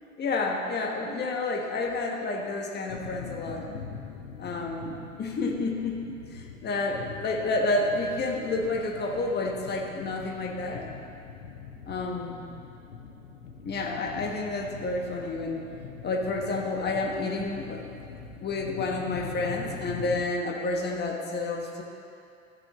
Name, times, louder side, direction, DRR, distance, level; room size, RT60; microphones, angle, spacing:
voice 1, 0.2-3.6 4.4-10.8 11.9-12.4 13.6-15.7 16.0-17.8 18.4-21.8, left 2 dB, 25° left, 1 dB, 1.3 m, -30 dB
sound 1, 2.9-20.2, left 6 dB, 85° left, 0.9 m, -43 dB
13.5 x 6.2 x 3.1 m, 2.6 s
hypercardioid pair, 85°, 38 cm